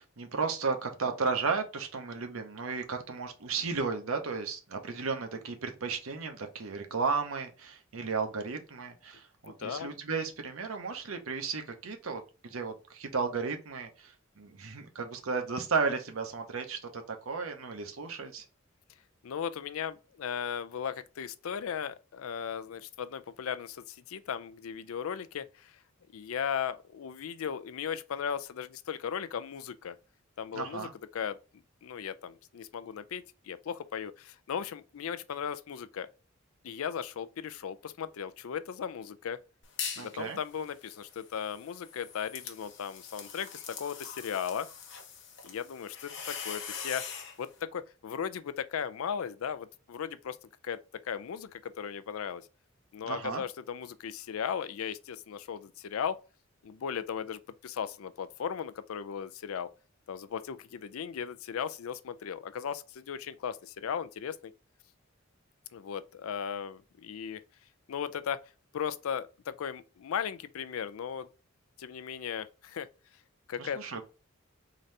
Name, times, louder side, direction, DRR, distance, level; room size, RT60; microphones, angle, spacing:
voice 1, 0.0-18.4 30.5-30.9 40.0-40.4 53.1-53.4 73.6-74.0, right 4 dB, 85° right, 0.8 m, -34 dB
voice 2, 9.5-9.9 19.2-25.7 26.1-30.0 30.4-31.4 31.8-36.1 36.6-39.4 40.0-44.7 45.4-47.0 47.4-50.4 50.6-50.8 51.0-52.5 52.9-56.2 56.6-59.7 60.1-64.5 65.7-67.4 67.9-68.4 68.7-71.3 71.8-72.9 73.5-73.8, left 7 dB, 85° left, 0.4 m, -37 dB
sound 1, 39.6-40.1 40.5-47.4, left 7 dB, 60° left, 1.0 m, -42 dB
3.9 x 2.7 x 3.2 m
head